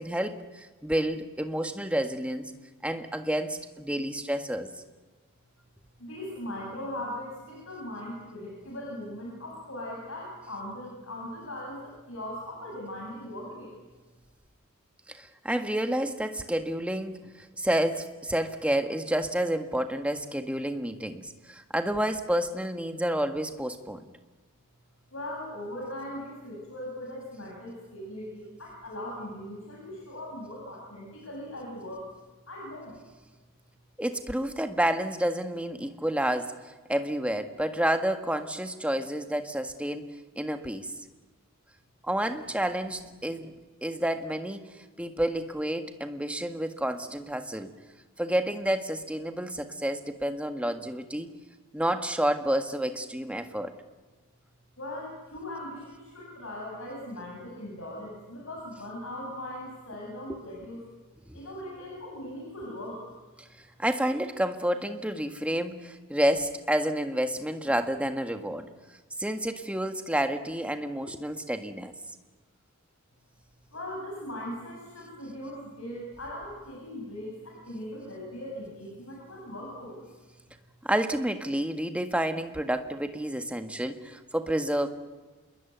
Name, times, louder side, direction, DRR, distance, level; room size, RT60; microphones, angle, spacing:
voice 1, 0.0-2.5 2.8-4.7 15.1-24.0 34.0-40.0 40.3-40.9 42.0-43.5 43.8-47.7 48.2-51.3 51.7-53.7 60.3-60.4 61.3-61.4 63.4-68.7 69.2-71.9 80.8-84.9, right 1 dB, 5° right, 6 dB, 1.7 m, -29 dB
voice 2, 6.0-13.7 25.1-32.1 32.5-33.0 54.8-60.9 61.3-63.0 73.7-80.0, left 1 dB, 70° left, -2 dB, 7.9 m, -39 dB
27.5 x 21.5 x 9.4 m, 1.3 s
head